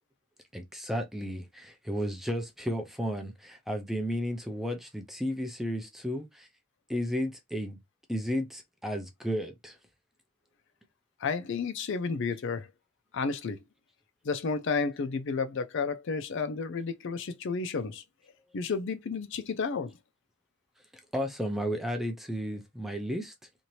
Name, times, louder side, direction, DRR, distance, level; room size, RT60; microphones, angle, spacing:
voice 1, 0.5-6.5 6.9-7.8 8.1-9.8 21.1-23.3, equal, ahead, 0.4 m, -33 dB
voice 2, 11.2-12.7 13.1-13.6 14.2-18.0 18.5-19.9, left 4 dB, 55° left, 0.4 m, -31 dB
2.8 x 2.5 x 3.0 m
head